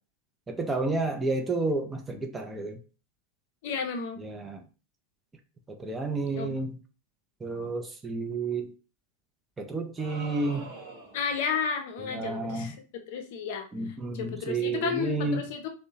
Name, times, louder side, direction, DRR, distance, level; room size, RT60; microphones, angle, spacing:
voice 1, 0.5-2.8 4.2-4.6 5.7-6.8 7.4-8.7 9.6-10.7 12.1-12.7 13.7-15.5, right 3 dB, 15° right, 4 dB, 0.4 m, -31 dB
voice 2, 3.6-4.2 6.3-6.6 11.1-12.8 13.1-15.7, left 6 dB, 50° left, 4 dB, 0.5 m, -32 dB
sound 1, 10.0-11.3, right 3 dB, 45° right, 0.8 m, -43 dB
2.6 x 2.0 x 2.8 m, 0.36 s
figure-of-eight pair, 90°, 0 cm